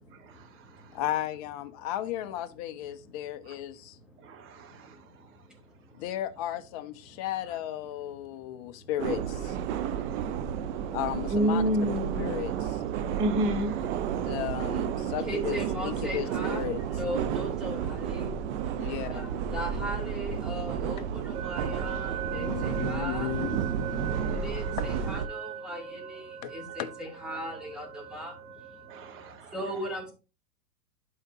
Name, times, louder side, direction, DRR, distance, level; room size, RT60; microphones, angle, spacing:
voice 1, 0.9-4.0 5.9-9.6 10.9-11.6 12.2-12.8 14.2-16.8 18.8-19.3 21.0-21.1 21.3-21.4 22.3-24.4 26.4-26.5 26.8-26.9, left 13 dB, 25° left, 0.5 m, -35 dB
voice 2, 4.2-5.0 9.7-10.3 11.3-12.4 13.0-13.9 18.8-19.1 24.1-24.7 28.9-29.5, right 1 dB, 25° right, 1.4 m, -31 dB
sound 1, 9.0-25.3, right 8 dB, 45° right, 0.7 m, -32 dB
voice 3, 15.2-16.6 16.9-18.3 19.1-23.3 24.2-28.4 29.5-30.1, equal, ahead, 2.6 m, -38 dB
sound 2, 21.3-29.3, right 7 dB, 65° right, 1.3 m, -40 dB
12.0 x 4.7 x 2.7 m
hypercardioid pair, 135°, 50 cm